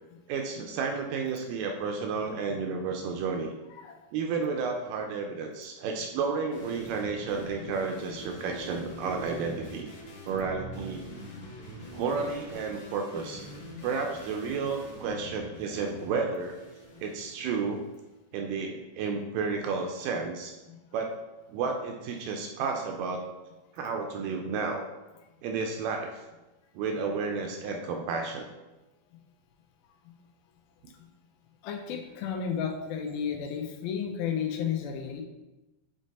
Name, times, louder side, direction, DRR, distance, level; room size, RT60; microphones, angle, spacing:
voice 1, 0.3-3.5 4.1-9.9 10.3-11.1 11.9-13.5 13.8-16.6 17.0-17.8 18.3-20.5 20.9-21.1 21.5-23.2 23.7-24.8 25.4-26.2 26.8-28.5, right 5 dB, 80° right, 3 dB, 2.0 m, -32 dB
sound 1, 6.5-18.0, equal, 55° left, 1.5 m, -44 dB
voice 2, 31.6-35.2, left 7 dB, 90° left, 4 dB, 2.6 m, -33 dB
7.5 x 3.3 x 4.1 m, 1.1 s
omnidirectional pair, 4.2 m